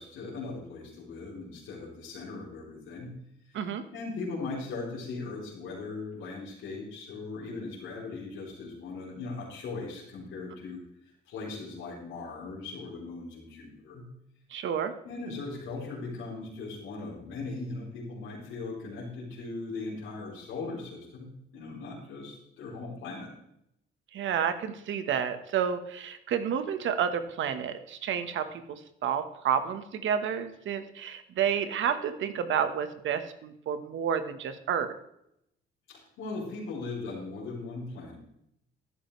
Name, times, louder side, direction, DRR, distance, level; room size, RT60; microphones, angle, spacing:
voice 1, 0.0-3.2 3.5-3.6 3.9-10.8 11.3-14.1 15.0-23.3 35.9-38.2, left 3 dB, 90° left, -6 dB, 3.7 m, -39 dB
voice 2, 3.5-3.8 14.5-14.9 24.1-34.9, right 8 dB, 75° right, 10 dB, 1.3 m, -30 dB
13.5 x 11.0 x 3.2 m, 0.78 s
cardioid pair, 90°, 20 cm